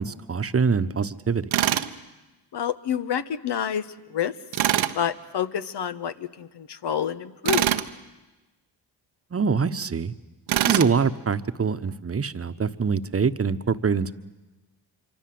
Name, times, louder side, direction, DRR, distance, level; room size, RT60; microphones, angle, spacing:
voice 1, 0.0-1.5 9.3-10.1 10.7-14.1, right 5 dB, 30° right, 12 dB, 1.2 m, -24 dB
Tools, 1.5-1.9 4.5-5.0 7.5-7.9 10.5-10.9, right 12 dB, 85° right, 1.1 m, -23 dB
voice 2, 2.5-4.3 4.9-7.7, left 9 dB, 65° left, 11 dB, 1.3 m, -28 dB
25.5 x 24.5 x 7.9 m, 1.1 s
supercardioid pair, 60°, 45 cm